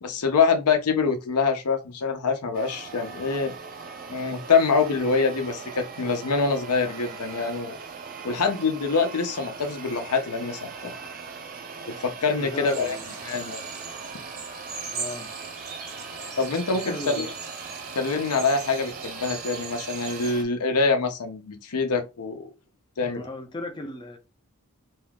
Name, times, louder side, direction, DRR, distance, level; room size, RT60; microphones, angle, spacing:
voice 1, 0.0-3.5 4.1-7.8 8.2-10.9 11.9-13.0 13.2-13.7 16.4-17.3 18.0-22.5 23.0-23.2, left 4 dB, 90° left, 0.6 m, -25 dB
sound 1, 2.5-20.4, right 5 dB, 40° right, 0.4 m, -40 dB
voice 2, 12.4-13.5 14.9-15.3 16.7-17.3 23.1-24.2, left 2 dB, 20° left, 0.4 m, -37 dB
sound 2, 12.6-20.4, right 4 dB, 65° right, 1.1 m, -39 dB
2.7 x 2.3 x 3.4 m
head